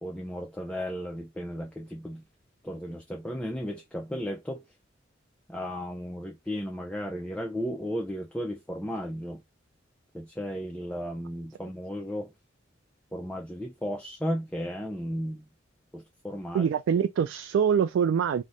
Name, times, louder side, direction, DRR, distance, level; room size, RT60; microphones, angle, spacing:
voice 1, 0.0-2.2 2.6-4.6 5.5-9.4 10.1-12.3 13.1-15.4 15.9-16.7, equal, 5° left, 0.3 m, -34 dB
voice 2, 16.5-18.4, right 7 dB, 85° right, 0.3 m, -24 dB
4.8 x 2.1 x 4.0 m
head